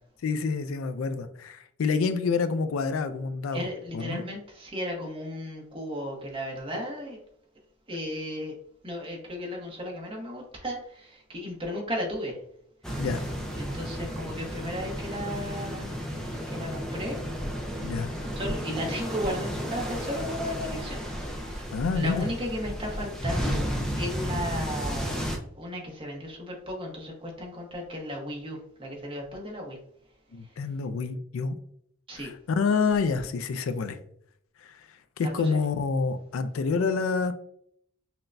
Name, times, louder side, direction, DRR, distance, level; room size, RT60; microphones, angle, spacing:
voice 1, 0.2-3.7 3.9-4.2 6.7-6.8 13.0-13.2 17.8-18.1 21.7-22.3 30.3-31.5 32.2-34.0 34.6-34.8 35.2-37.3, left 4 dB, 85° left, 11 dB, 0.4 m, -28 dB
voice 2, 3.5-7.2 7.9-8.6 8.8-12.4 12.8-13.1 13.6-17.2 17.8-17.9 18.4-21.0 21.3-25.2 25.6-29.8 30.4-30.5 32.1-32.3 35.2-35.6, equal, 25° right, 0 dB, 1.0 m, -35 dB
sound 1, 12.8-25.4, equal, 5° left, 0.5 m, -33 dB
5.8 x 2.2 x 2.5 m, 0.68 s
head